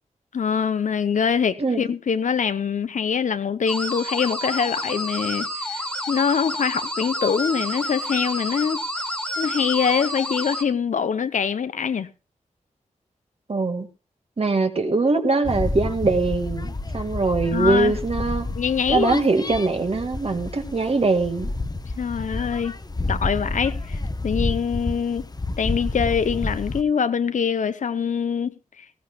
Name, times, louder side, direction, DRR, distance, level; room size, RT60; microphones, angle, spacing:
voice 1, 0.3-8.8 9.4-12.1 17.5-18.0 18.6-19.2 22.0-22.8 23.1-24.0 24.2-25.3 25.6-28.5, left 6 dB, 80° left, 0.8 m, -24 dB
voice 2, 1.6-1.9 13.5-13.9 14.4-18.5 18.9-21.5, right 3 dB, 50° right, 2.0 m, -22 dB
sound 1, 3.7-10.6, left 1 dB, 5° left, 1.8 m, -29 dB
sound 2, 15.4-26.8, left 2 dB, 30° left, 1.0 m, -30 dB
19.0 x 15.5 x 2.4 m
wide cardioid pair, 70°, 13 cm